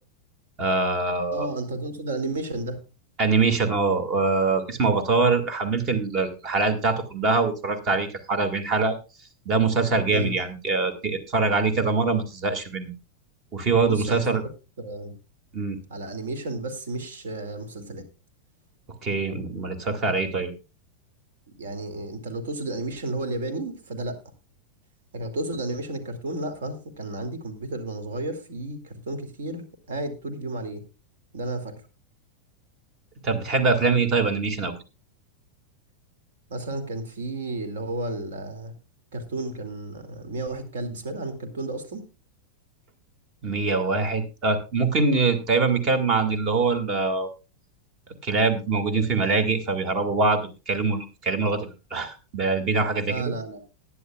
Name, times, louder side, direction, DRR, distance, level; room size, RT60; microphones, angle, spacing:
voice 1, 0.6-1.5 3.2-9.0 9.5-12.9 13.5-14.4 15.5-15.8 19.0-20.5 33.2-34.7 43.4-47.3 48.2-53.3, right 4 dB, 35° right, 10 dB, 2.0 m, -23 dB
voice 2, 1.3-2.8 10.1-10.3 13.8-14.4 14.8-15.1 15.9-18.0 21.6-24.2 25.1-30.8 31.3-31.7 36.5-38.7 39.1-42.0 53.1-53.6, right 2 dB, 60° right, 7 dB, 2.3 m, -32 dB
20.0 x 9.9 x 2.3 m, 0.29 s
figure-of-eight pair, 90°, 0 cm